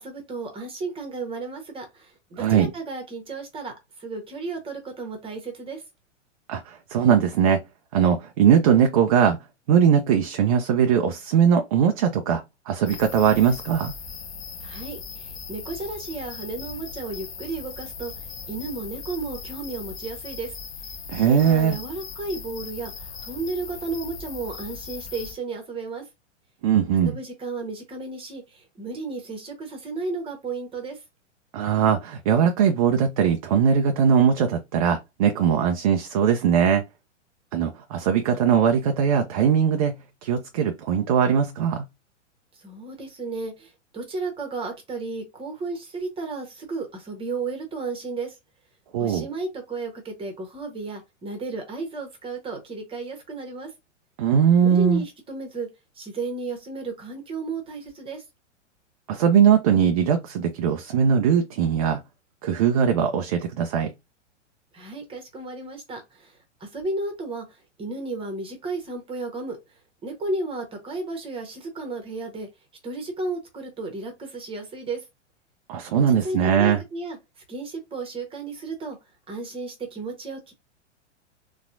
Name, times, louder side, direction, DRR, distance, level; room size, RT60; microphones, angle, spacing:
voice 1, 0.0-5.8 14.6-20.5 21.2-26.1 27.0-31.0 42.5-48.4 49.0-53.7 54.6-55.7 55.9-58.2 64.7-69.6 70.0-72.5 72.8-75.0 75.9-77.2 77.5-79.0 79.3-80.5, right 3 dB, 15° right, 1.1 m, -33 dB
voice 2, 2.4-2.7 6.5-7.6 7.9-9.4 9.7-13.9 21.1-21.8 26.6-27.2 31.5-36.8 37.5-39.9 40.2-41.8 48.9-49.3 54.2-55.0 59.1-62.0 62.4-63.9 75.7-76.8, right 8 dB, 30° right, 0.4 m, -20 dB
sound 1, 12.9-25.3, left 5 dB, 55° left, 0.9 m, -39 dB
4.1 x 2.4 x 2.5 m
figure-of-eight pair, 105°, 37 cm